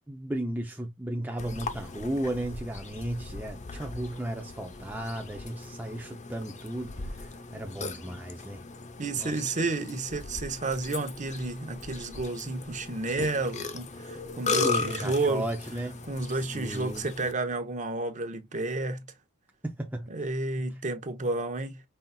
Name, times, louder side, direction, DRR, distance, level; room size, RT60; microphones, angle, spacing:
voice 1, 0.1-8.6 9.1-9.3 14.6-16.0 16.3-17.0 19.6-20.1, right 1 dB, 10° right, 0.6 m, -35 dB
Burping eructation, 1.4-17.3, left 4 dB, 35° left, 0.8 m, -37 dB
voice 2, 9.0-15.5 16.1-19.1 20.1-21.8, right 2 dB, 35° right, 0.9 m, -31 dB
5.6 x 4.0 x 2.3 m
head